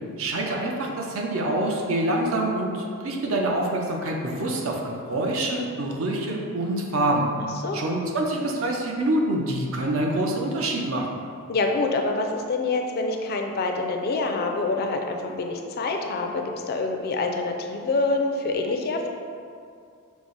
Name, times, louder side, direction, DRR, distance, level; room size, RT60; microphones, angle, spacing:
voice 1, 0.2-7.3 7.7-11.2, right 1 dB, 60° right, 0 dB, 0.6 m, -26 dB
voice 2, 11.5-19.1, left 3 dB, 45° left, 3 dB, 0.3 m, -26 dB
5.9 x 2.0 x 3.8 m, 2.3 s
head